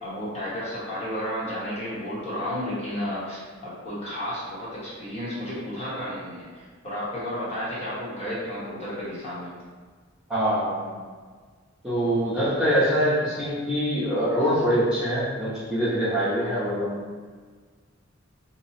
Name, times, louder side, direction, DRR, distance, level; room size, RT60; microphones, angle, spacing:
voice 1, 0.0-9.5, equal, 35° left, -8 dB, 1.1 m, -32 dB
voice 2, 10.3-10.9 11.8-17.2, equal, 5° right, -11 dB, 0.8 m, -24 dB
2.9 x 2.2 x 4.2 m, 1.5 s
head